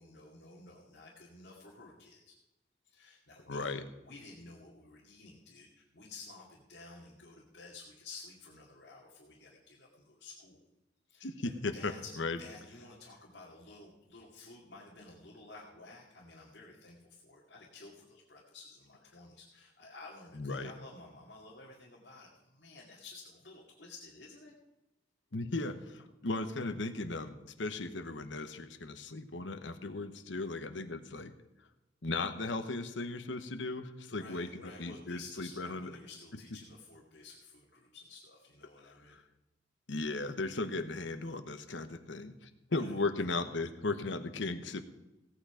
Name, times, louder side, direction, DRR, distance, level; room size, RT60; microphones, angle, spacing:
voice 1, 0.0-2.4 2.8-3.7 4.0-10.6 11.1-11.3 11.7-12.1 12.4-24.6 34.1-39.2 42.7-43.2, left 3 dB, 60° left, -4 dB, 2.3 m, -52 dB
voice 2, 3.5-3.8 11.2-12.4 20.3-20.7 25.3-31.3 32.0-35.9 38.8-39.2 39.9-44.8, left 3 dB, 85° left, 10 dB, 1.1 m, -37 dB
16.5 x 9.1 x 5.0 m, 0.98 s
head